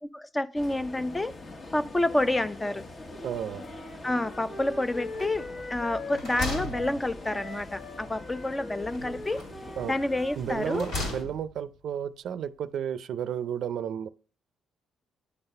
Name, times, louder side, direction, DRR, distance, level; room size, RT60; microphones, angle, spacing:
voice 1, 0.1-1.3 1.7-2.8 4.0-9.5 9.8-10.9, left 1 dB, 15° left, 0.5 m, -29 dB
sound 1, 0.5-11.2, left 2 dB, 40° left, 1.2 m, -44 dB
voice 2, 3.2-3.6 9.8-10.0 10.3-14.1, right 9 dB, 70° right, 0.5 m, -32 dB
Wind instrument woodwind instrument, 3.6-11.0, left 1 dB, 60° left, 1.4 m, -42 dB
sound 2, 5.1-5.6 6.0-7.6 8.8-9.7 10.4-11.6, left 2 dB, 80° left, 2.9 m, -37 dB
9.7 x 4.0 x 5.5 m
cardioid pair, 90°, 0 cm